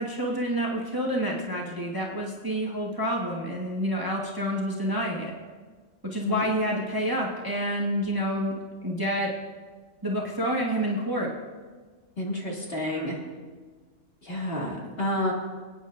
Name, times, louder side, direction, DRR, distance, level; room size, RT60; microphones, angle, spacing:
voice 1, 0.0-5.3 6.1-8.5 8.8-9.3 10.0-11.3, equal, 15° right, -3 dB, 1.3 m, -28 dB
voice 2, 12.2-13.2 14.2-15.3, left 1 dB, 45° left, -3 dB, 2.3 m, -30 dB
24.0 x 9.2 x 2.5 m, 1.4 s
omnidirectional pair, 1.4 m